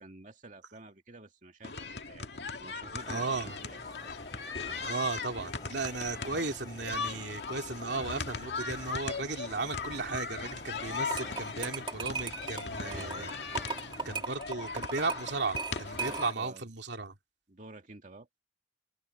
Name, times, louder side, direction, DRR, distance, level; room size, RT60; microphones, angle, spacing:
voice 1, 0.0-4.2 12.8-13.3 16.0-16.7 17.5-18.3, right 2 dB, 45° right, 2.4 m, -50 dB
sound 1, 1.6-16.3, left 4 dB, 70° left, 2.3 m, -39 dB
sound 2, 3.0-14.2, left 1 dB, 25° left, 4.6 m, -52 dB
voice 2, 3.1-3.6 4.9-13.3 14.0-17.1, right 3 dB, 80° right, 2.5 m, -35 dB
sound 3, 10.9-16.5, right 4 dB, 30° right, 2.2 m, -38 dB
open air
head